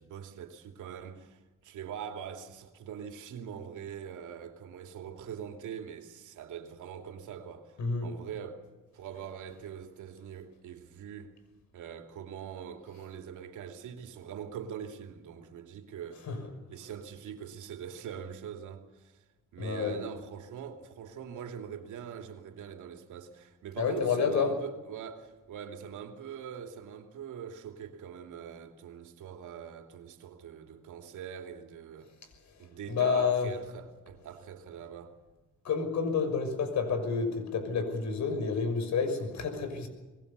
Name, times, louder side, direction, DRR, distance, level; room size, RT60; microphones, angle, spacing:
voice 1, 0.0-8.6 8.9-11.3 11.7-16.3 16.7-19.2 19.5-32.1 32.6-35.1, right 8 dB, 80° right, 2.9 m, -43 dB
voice 2, 7.8-8.1 16.3-16.4 19.6-20.0 23.8-24.5 32.9-33.5 35.6-39.9, left 5 dB, 65° left, 6.2 m, -29 dB
25.0 x 21.0 x 6.9 m
cardioid pair, 90°, 30 cm